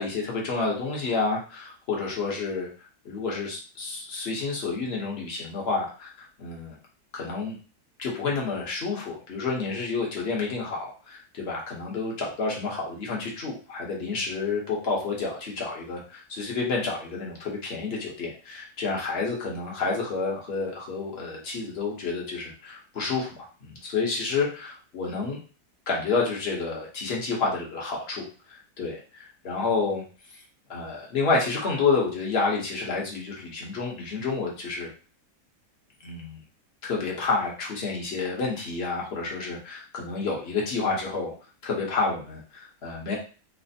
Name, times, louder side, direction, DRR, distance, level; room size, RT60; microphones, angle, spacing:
voice 1, 0.0-2.7 3.0-6.7 7.1-7.6 8.0-25.4 25.9-30.0 30.7-34.9 36.0-36.4 36.8-41.3 41.6-43.2, left 4 dB, 45° left, -2 dB, 1.0 m, -29 dB
3.3 x 2.0 x 4.1 m, 0.38 s
omnidirectional pair, 1.7 m